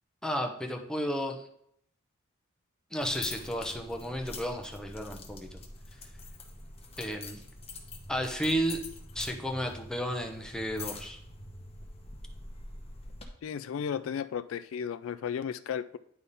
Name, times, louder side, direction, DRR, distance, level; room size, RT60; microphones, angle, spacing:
voice 1, 0.2-1.4 2.9-5.6 7.0-7.4 8.1-8.8 9.1-11.2, equal, 5° left, 2 dB, 0.8 m, -33 dB
sound 1, 3.0-13.3, left 3 dB, 30° left, 0.9 m, -45 dB
voice 2, 13.4-16.0, left 7 dB, 75° left, 13 dB, 0.3 m, -34 dB
10.0 x 3.5 x 4.1 m, 0.70 s
head